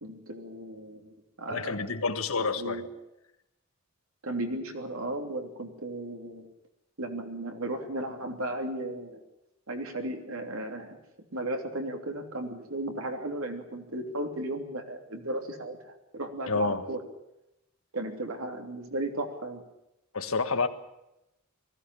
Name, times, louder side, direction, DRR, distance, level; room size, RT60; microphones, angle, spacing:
voice 1, 0.0-1.9 2.4-2.9 4.2-6.5 7.0-9.2 9.7-11.0 11.3-17.0 17.9-19.6, right 1 dB, 80° right, 4 dB, 3.1 m, -35 dB
voice 2, 1.5-2.8 16.5-16.9 20.1-20.7, left 4 dB, 80° left, 8 dB, 1.6 m, -29 dB
20.0 x 15.0 x 9.8 m, 0.89 s
head